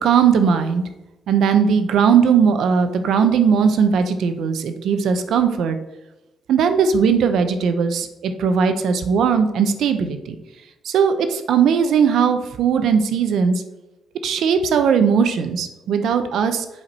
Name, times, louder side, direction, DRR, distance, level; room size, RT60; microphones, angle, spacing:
voice 1, 0.0-0.8 1.3-5.8 6.5-10.4 10.8-13.5 14.2-16.7, right 6 dB, 70° right, 9 dB, 0.7 m, -18 dB
7.9 x 4.5 x 4.2 m, 1.0 s
cardioid pair, 155°, 0 cm